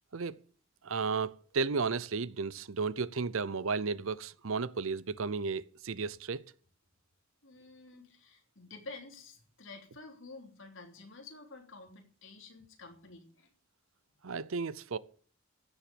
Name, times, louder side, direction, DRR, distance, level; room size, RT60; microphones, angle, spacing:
voice 1, 0.8-6.4 14.2-15.0, right 4 dB, 70° right, 0.7 m, -33 dB
voice 2, 7.4-13.5, left 3 dB, 60° left, 3.3 m, -50 dB
16.0 x 7.3 x 6.9 m
head